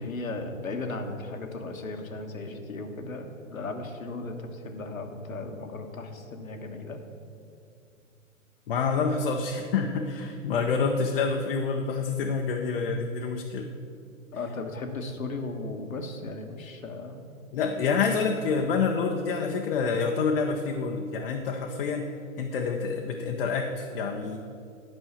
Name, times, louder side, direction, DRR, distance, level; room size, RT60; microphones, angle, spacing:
voice 1, 0.0-7.0 14.3-17.3, left 2 dB, 80° left, 5 dB, 1.3 m, -36 dB
voice 2, 8.7-13.7 17.5-22.1 22.4-24.4, left 5 dB, 45° left, 2 dB, 0.8 m, -27 dB
9.1 x 5.4 x 7.1 m, 2.4 s
hypercardioid pair, 130°, 41 cm